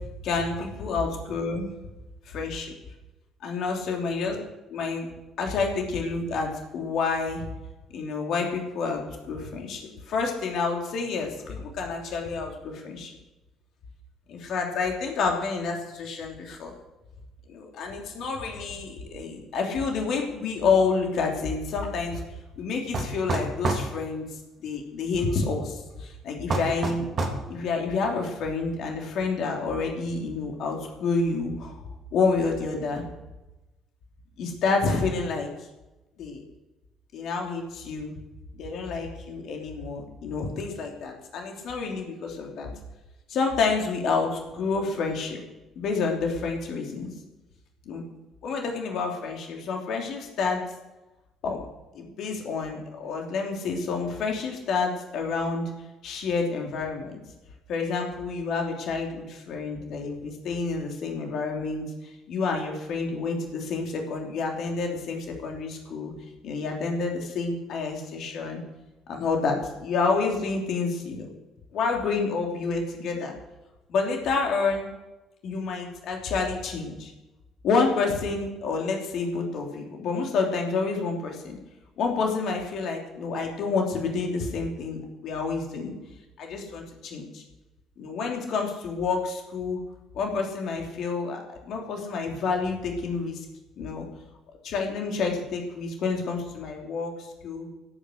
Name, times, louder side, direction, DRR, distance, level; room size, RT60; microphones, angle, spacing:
voice 1, 0.2-1.7 2.3-2.7 3.4-4.4 4.7-5.1 5.4-7.4 7.9-13.1 14.3-16.7 17.5-22.2 22.6-24.2 24.6-27.1 27.5-31.7 32.1-33.0 34.4-35.5 36.2-36.4 37.1-38.1 38.6-42.7 43.3-45.4 45.7-47.1 47.8-48.0 48.4-50.6 51.4-51.6 51.9-55.6 56.0-57.2 57.7-61.8 62.3-66.1 66.4-68.6 69.1-71.3 71.7-73.3 73.9-74.9 75.4-77.1 77.6-81.6 82.0-85.9 86.4-87.4 88.0-89.8 90.1-93.4 93.8-94.0 94.6-97.7, left 4 dB, 55° left, 1 dB, 3.1 m, -29 dB
sound 1, 22.9-23.9 26.5-27.4, right 2 dB, 45° right, 3.0 m, -27 dB
16.5 x 9.5 x 6.6 m, 1.1 s
figure-of-eight pair, 50°, 0 cm